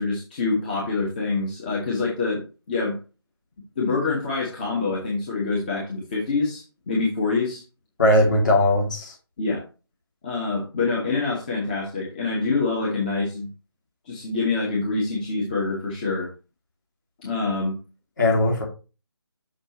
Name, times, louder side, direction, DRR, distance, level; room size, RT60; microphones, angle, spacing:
voice 1, 0.0-3.0 3.8-7.6 9.4-9.6 10.2-13.5 14.1-16.3 17.2-17.7, left 3 dB, 20° left, 1.2 m, -26 dB
voice 2, 8.0-9.1 18.2-18.6, left 1 dB, 45° left, 2.6 m, -19 dB
6.6 x 5.4 x 3.0 m
figure-of-eight pair, 155°, 14 cm